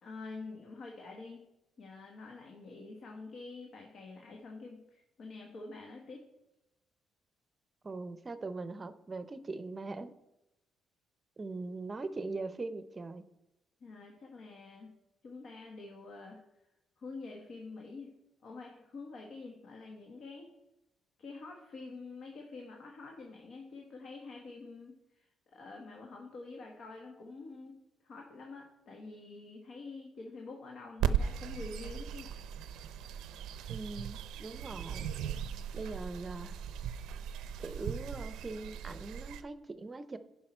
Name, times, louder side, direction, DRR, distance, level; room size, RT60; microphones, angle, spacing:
voice 1, 0.0-1.4 1.8-6.3 13.8-14.9 15.2-16.4 17.0-18.1 18.4-20.5 21.2-27.8 28.0-32.3, left 3 dB, 60° left, 1 dB, 1.3 m, -47 dB
voice 2, 7.8-10.1 11.4-13.2 33.7-35.1 35.7-36.6 37.6-40.2, right 3 dB, 30° right, 12 dB, 0.6 m, -41 dB
sound 1, 31.0-39.4, right 8 dB, 90° right, 0.5 m, -38 dB
10.5 x 5.7 x 4.4 m, 0.90 s
cardioid pair, 90°, 0 cm